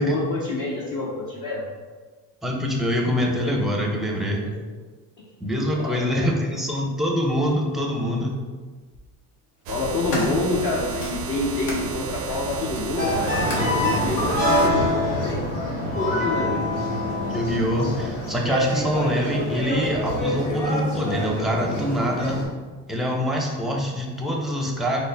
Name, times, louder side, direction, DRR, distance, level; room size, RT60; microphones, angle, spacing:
voice 1, 0.0-1.6 4.4-4.8 5.7-6.3 9.7-15.4 15.9-16.6, left 3 dB, 45° left, -5 dB, 0.7 m, -27 dB
voice 2, 2.4-4.5 5.4-8.3 17.3-22.4 22.9-25.0, equal, ahead, -1 dB, 0.5 m, -24 dB
sound 1, 7.5-7.6 8.7-9.0 9.6-11.9 12.3-13.8 14.7-14.8, left 1 dB, 70° left, 1.1 m, -34 dB
sound 2, 9.7-14.7, right 7 dB, 65° right, 0.5 m, -32 dB
sound 3, 13.0-22.4, left 1 dB, 90° left, 1.3 m, -25 dB
3.9 x 2.0 x 3.3 m, 1.3 s
supercardioid pair, 80°, 45 cm